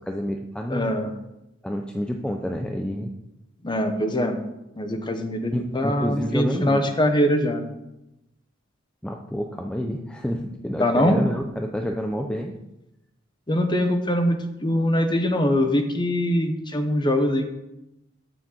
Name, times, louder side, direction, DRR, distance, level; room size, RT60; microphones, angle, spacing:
voice 1, 0.1-0.9 1.6-3.1 5.5-6.8 9.0-12.5, equal, 5° left, 2 dB, 0.5 m, -28 dB
voice 2, 0.7-1.1 3.6-4.4 4.8-7.6 10.8-11.2 13.5-17.5, equal, 25° left, 6 dB, 1.0 m, -22 dB
7.1 x 6.1 x 7.3 m, 0.92 s
head